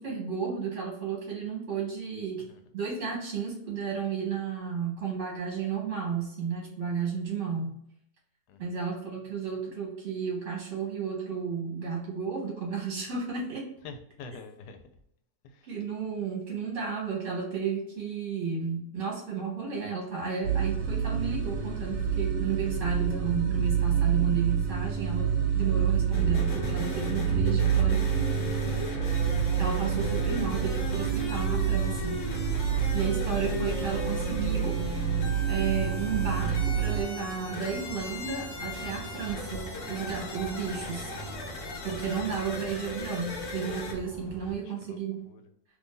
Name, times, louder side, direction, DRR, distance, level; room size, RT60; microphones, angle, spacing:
voice 1, 0.0-2.5 2.7-7.7 8.6-13.6 15.7-28.3 29.6-32.5 32.9-34.8 35.5-41.1 41.8-45.2, right 6 dB, 50° right, -3 dB, 1.2 m, -33 dB
voice 2, 8.5-8.9 13.8-14.9 15.4-15.8 44.5-45.0 45.2-45.4, left 4 dB, 85° left, 7 dB, 1.2 m, -46 dB
sound 1, 20.4-37.0, right 8 dB, 75° right, 1.1 m, -28 dB
sound 2, 26.1-43.9, left 2 dB, 55° left, 1.2 m, -37 dB
sound 3, 29.0-44.6, right 1 dB, 35° left, 1.0 m, -43 dB
2.8 x 2.6 x 3.6 m, 0.74 s
omnidirectional pair, 1.7 m